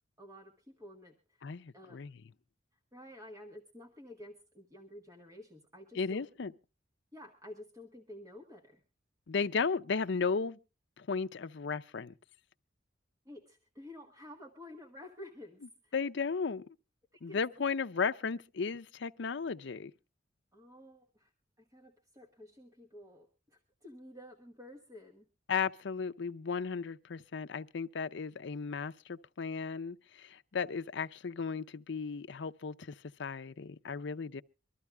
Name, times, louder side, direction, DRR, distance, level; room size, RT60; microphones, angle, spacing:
voice 1, 0.2-1.5 1.7-2.0 2.9-6.2 7.1-8.8 13.2-15.9 17.1-17.4 20.5-21.3 21.6-25.3, left 1 dB, 20° right, 1.3 m, -51 dB
voice 2, 1.4-2.2 6.0-6.5 9.3-10.6 11.0-12.1 15.9-16.7 17.2-19.9 25.5-32.9 33.2-34.4, left 5 dB, 70° left, 0.6 m, -35 dB
24.5 x 13.5 x 2.2 m
head